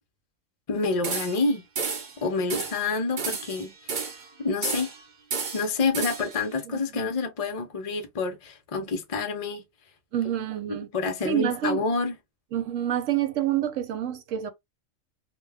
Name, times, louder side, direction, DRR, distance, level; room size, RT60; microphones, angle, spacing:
voice 1, 0.7-1.7 2.2-4.0 4.4-4.9 5.5-9.6 10.7-12.1, left 4 dB, 40° left, 0.5 m, -28 dB
sound 1, 1.0-1.5 1.7-2.1 2.5-2.8 3.2-4.3 4.6-5.0 5.3-6.4, right 5 dB, 45° right, 0.7 m, -32 dB
voice 2, 10.1-10.9 11.2-11.8 12.5-14.5, right 11 dB, 75° right, 1.0 m, -27 dB
2.3 x 2.3 x 3.3 m
omnidirectional pair, 1.3 m